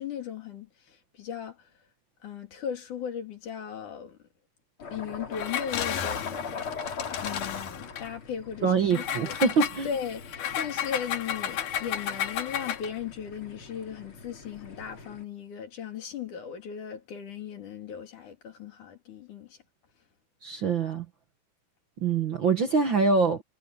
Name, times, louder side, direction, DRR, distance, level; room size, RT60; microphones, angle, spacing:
voice 1, 0.0-1.7 2.2-4.2 4.9-6.6 7.2-9.4 9.8-19.6, left 8 dB, 75° left, 4.4 m, -37 dB
sound 1, 4.8-15.2, left 5 dB, 40° left, 4.2 m, -41 dB
Engine, 5.3-8.1 8.9-13.0, left 9 dB, 90° left, 3.2 m, -33 dB
voice 2, 8.6-9.9 20.4-21.1 22.0-23.4, right 4 dB, 50° right, 1.7 m, -24 dB
omnidirectional pair, 3.6 m